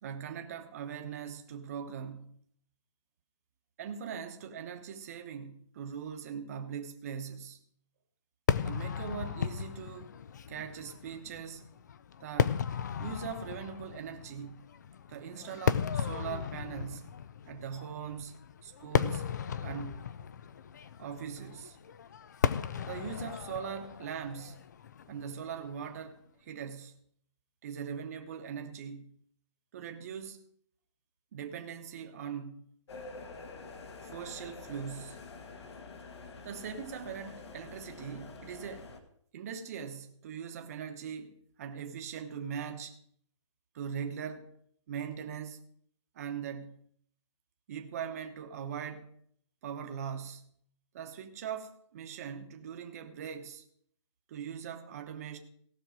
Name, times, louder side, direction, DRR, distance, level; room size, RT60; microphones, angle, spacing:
voice 1, 0.0-2.4 3.8-7.6 8.6-10.2 10.5-11.7 12.2-12.6 13.0-14.7 15.1-19.3 19.6-20.1 21.0-21.8 22.9-24.7 25.1-27.0 27.6-29.2 29.7-30.4 31.3-32.8 34.0-35.3 36.4-38.9 39.3-43.0 43.7-44.5 44.9-45.6 46.1-46.8 47.7-49.1 49.6-50.6 50.9-53.6 54.3-55.4, right 7 dB, 30° right, 1.0 m, -41 dB
Fireworks, 8.5-25.8, left 7 dB, 35° left, 0.4 m, -35 dB
sound 1, 32.9-39.0, left 3 dB, 60° left, 1.6 m, -47 dB
17.5 x 6.1 x 5.0 m
hypercardioid pair, 175°, 16 cm